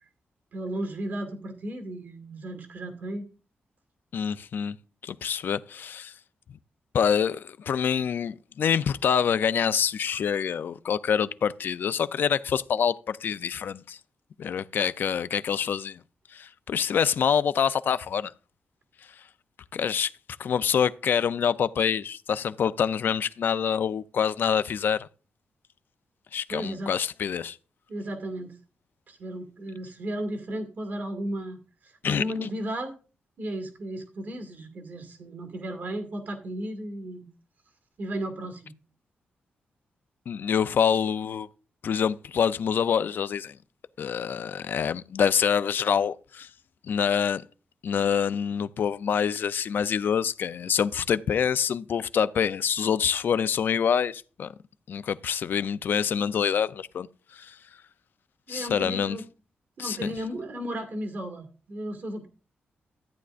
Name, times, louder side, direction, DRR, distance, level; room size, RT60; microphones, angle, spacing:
voice 1, 0.5-3.3 26.5-26.9 27.9-28.6 29.1-31.6 31.8-32.9 33.4-37.3 38.0-38.7 58.5-59.2 59.8-62.3, right 1 dB, 55° right, 2.0 m, -34 dB
voice 2, 4.1-4.8 5.0-6.1 6.9-14.0 14.4-16.0 16.3-18.3 19.7-20.1 20.4-25.1 26.3-27.6 32.0-32.2 40.3-41.5 41.8-43.6 44.0-46.5 46.8-47.4 47.8-54.5 54.9-57.1 57.3-57.6 58.5-59.2 59.8-60.1, left 7 dB, 60° left, 0.5 m, -26 dB
14.0 x 9.5 x 2.5 m
wide cardioid pair, 135°, 4 cm